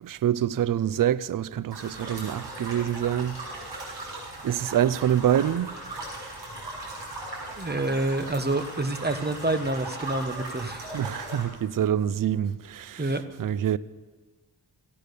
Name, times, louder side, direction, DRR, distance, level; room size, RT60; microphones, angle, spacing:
voice 1, 0.0-4.2 4.4-5.8 10.9-13.8, right 10 dB, 50° right, 0.5 m, -26 dB
sound 1, 1.7-11.4, right 1 dB, 70° right, 5.8 m, -38 dB
voice 2, 7.6-10.9 13.0-13.2, right 2 dB, 25° right, 1.1 m, -27 dB
15.5 x 8.6 x 6.7 m
cardioid pair, 60°, 43 cm